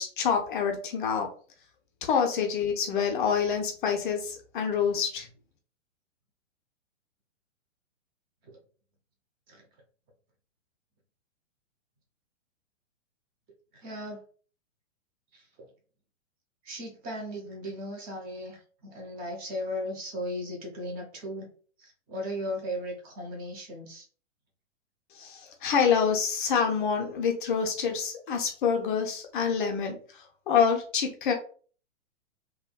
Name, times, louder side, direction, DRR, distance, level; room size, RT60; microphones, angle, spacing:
voice 1, 0.0-1.3 2.0-5.3 25.1-31.3, left 6 dB, 45° left, 3 dB, 0.5 m, -27 dB
voice 2, 13.8-14.2 15.3-15.4 16.6-21.5 21.8-24.0, equal, 25° right, 1 dB, 0.8 m, -36 dB
3.4 x 2.2 x 2.2 m, 0.42 s
figure-of-eight pair, 115°, 38 cm